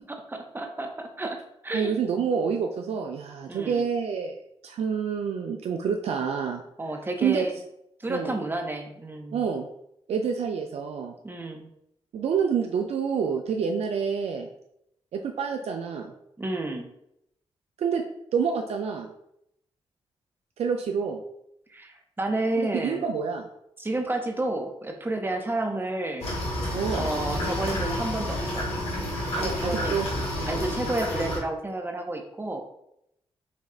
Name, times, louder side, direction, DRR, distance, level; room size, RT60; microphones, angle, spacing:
voice 1, 0.1-1.4 1.6-1.9 3.5-3.8 6.8-7.6 8.0-9.4 11.2-11.7 16.4-16.9 21.7-23.1 23.8-26.3 26.9-28.7 29.4-30.0 30.5-32.6, right 2 dB, 20° right, 4 dB, 0.6 m, -31 dB
voice 2, 1.7-6.6 7.2-7.5 8.1-8.3 9.3-9.7 10.1-11.1 12.1-14.5 15.1-16.1 17.8-18.0 18.3-19.1 20.6-21.2 22.6-23.5 26.7-27.1 29.3-30.1 30.4-30.6, right 6 dB, 80° right, 3 dB, 0.4 m, -28 dB
sound 1, 26.2-31.4, left 1 dB, 85° left, 1.4 m, -30 dB
5.3 x 2.3 x 3.7 m, 0.78 s
wide cardioid pair, 100°, 11 cm